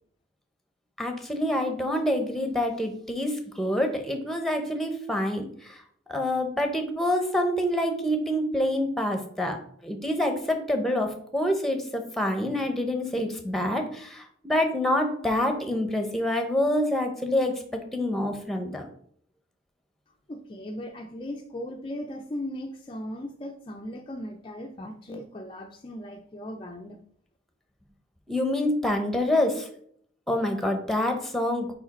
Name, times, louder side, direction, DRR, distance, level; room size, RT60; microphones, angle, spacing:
voice 1, 1.0-5.8 6.1-9.6 9.8-17.5 17.9-18.9 28.3-29.7 30.3-31.7, left 1 dB, ahead, 5 dB, 0.8 m, -26 dB
voice 2, 20.3-27.0, left 1 dB, 25° left, 3 dB, 0.4 m, -37 dB
4.9 x 4.8 x 4.2 m, 0.63 s
head